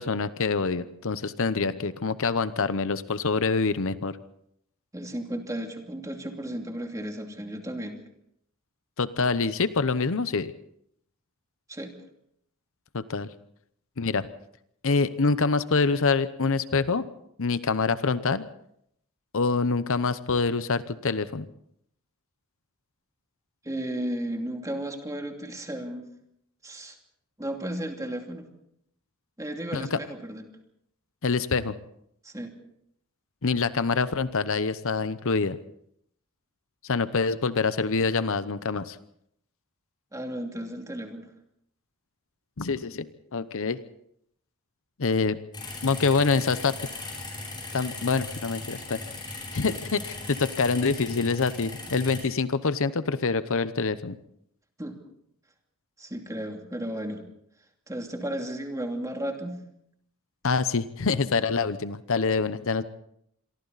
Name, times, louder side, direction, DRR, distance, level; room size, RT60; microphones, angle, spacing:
voice 1, 0.0-4.1 9.0-10.5 12.9-13.3 14.0-14.3 14.8-17.1 17.4-18.4 19.3-21.5 29.7-30.0 31.2-31.8 33.4-35.6 36.8-39.0 42.6-43.8 45.0-45.4 45.8-46.8 47.7-49.0 49.5-54.2 60.4-62.8, left 4 dB, 65° left, 14 dB, 0.8 m, -26 dB
voice 2, 4.9-8.0 11.7-11.9 23.6-26.0 26.6-27.0 27.4-28.5 29.4-30.4 32.2-32.5 40.1-41.3 54.8-55.0 56.0-57.2 57.9-59.6, right 1 dB, 15° right, 3 dB, 2.7 m, -34 dB
sound 1, 45.5-52.2, left 3 dB, 20° left, 7.4 m, -38 dB
27.0 x 23.5 x 4.1 m, 0.73 s
head